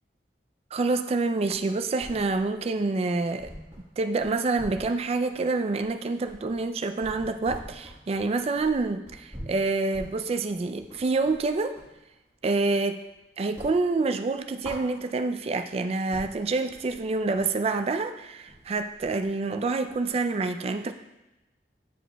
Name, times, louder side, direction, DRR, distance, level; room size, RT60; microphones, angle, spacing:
voice 1, 0.7-3.5 4.0-11.8 12.4-13.0 13.4-20.9, right 3 dB, 35° right, 8 dB, 0.3 m, -27 dB
sound 1, 1.5-2.6 3.0-3.1 3.4-12.0 12.4-13.1 13.4-15.4 15.8-15.9 16.1-20.3, equal, 15° right, 1.3 m, -45 dB
9.6 x 5.0 x 2.2 m, 0.99 s
head